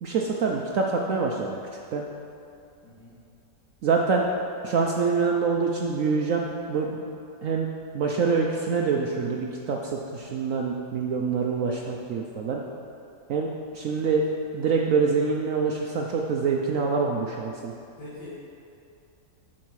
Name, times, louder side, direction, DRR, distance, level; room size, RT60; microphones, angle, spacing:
voice 1, 0.0-1.6 1.9-2.0 3.8-4.3 4.6-7.1 7.4-7.7 7.9-12.6 13.3-13.5 13.7-14.2 14.5-17.7, right 5 dB, 70° right, 0 dB, 0.7 m, -25 dB
voice 2, 2.8-3.1 11.6-12.0 13.9-14.1 18.0-18.3, left 1 dB, 75° left, -14 dB, 2.9 m, -45 dB
8.6 x 6.3 x 4.7 m, 2.5 s
omnidirectional pair, 2.0 m